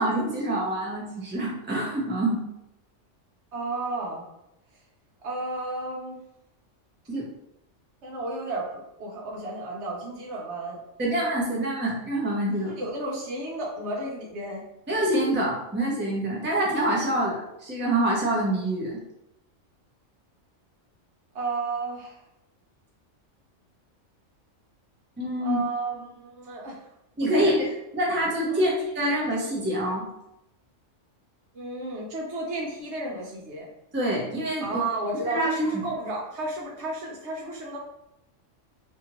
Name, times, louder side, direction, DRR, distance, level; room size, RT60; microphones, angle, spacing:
voice 1, 0.0-2.4 7.1-7.3 11.0-12.8 14.9-19.0 25.2-25.6 27.2-27.7 27.9-30.1 33.9-34.8 35.3-35.7, right 1 dB, 15° right, -4 dB, 0.4 m, -26 dB
voice 2, 3.5-4.2 5.2-6.2 8.0-10.8 12.7-14.6 21.3-22.2 25.4-26.8 27.2-27.5 28.5-28.7 31.5-33.7 34.6-37.8, right 2 dB, 65° right, -2 dB, 1.0 m, -33 dB
2.8 x 2.5 x 2.9 m, 0.85 s
omnidirectional pair, 1.3 m